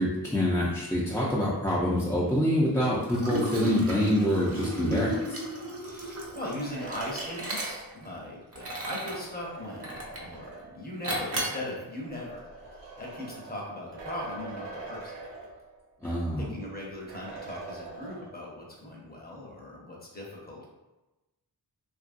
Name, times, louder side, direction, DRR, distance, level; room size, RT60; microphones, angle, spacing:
voice 1, 0.0-5.4 16.0-16.5, left 1 dB, 5° left, -7 dB, 0.5 m, -26 dB
Liquid, 3.0-8.1 8.5-9.2 9.8-10.3 11.0-11.6, right 1 dB, 35° right, 0.6 m, -34 dB
voice 2, 5.8-12.4 12.7-15.1 16.0-20.7, left 1 dB, 25° left, -3 dB, 0.8 m, -39 dB
sound 1, 6.2-10.9 11.9-16.0 16.3-16.4 17.1-18.6, right 3 dB, 90° right, 0.7 m, -44 dB
2.8 x 2.6 x 2.5 m, 1.0 s
wide cardioid pair, 80°, 40 cm